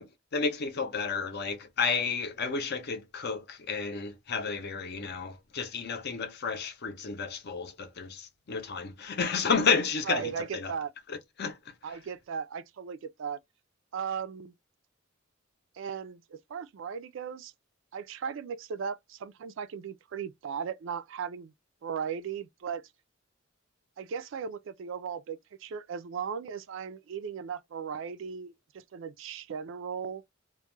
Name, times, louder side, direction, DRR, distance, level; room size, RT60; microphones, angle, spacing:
voice 1, 0.0-10.7 11.1-11.7, left 5 dB, 55° left, 0.6 m, -31 dB
voice 2, 10.1-10.9 11.8-13.4 13.9-14.5 15.8-17.5 17.9-21.5 21.8-22.8 24.0-30.2, right 7 dB, 70° right, 0.3 m, -37 dB
2.3 x 2.1 x 3.1 m
head